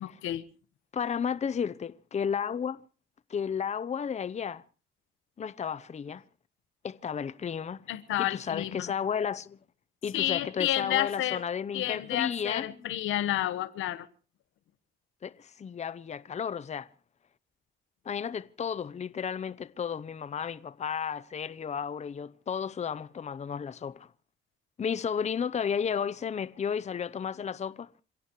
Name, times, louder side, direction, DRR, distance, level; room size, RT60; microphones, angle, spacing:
voice 1, 0.0-0.4 7.9-8.8 10.1-11.4 11.7-14.1, left 13 dB, 85° left, 1.3 m, -30 dB
voice 2, 0.9-2.8 3.3-4.6 5.4-6.2 6.8-7.8 8.2-9.6 10.0-12.7 15.2-16.9 18.0-24.1 24.8-27.9, left 7 dB, 35° left, 0.7 m, -33 dB
28.0 x 16.5 x 3.0 m
cardioid pair, 90°, 20 cm